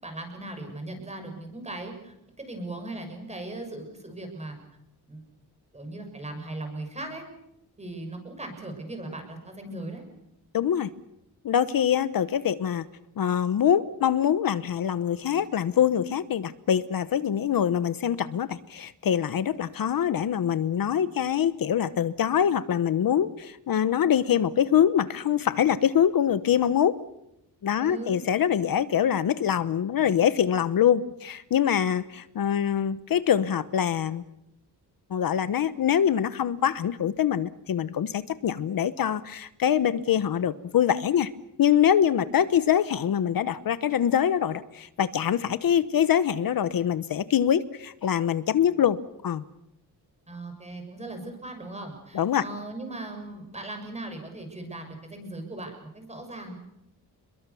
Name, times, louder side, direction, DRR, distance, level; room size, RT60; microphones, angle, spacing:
voice 1, 0.0-4.6 5.1-5.2 5.7-7.2 7.8-10.0 27.8-28.2 50.3-56.5, right 2 dB, 15° right, 5 dB, 6.7 m, -38 dB
voice 2, 10.5-10.9 11.4-12.8 13.2-27.0 27.6-34.2 35.1-41.3 41.6-49.0 49.2-49.4 52.1-52.4, left 9 dB, 60° left, 14 dB, 1.0 m, -24 dB
28.5 x 22.0 x 7.1 m, 0.85 s
wide cardioid pair, 155°, 40 cm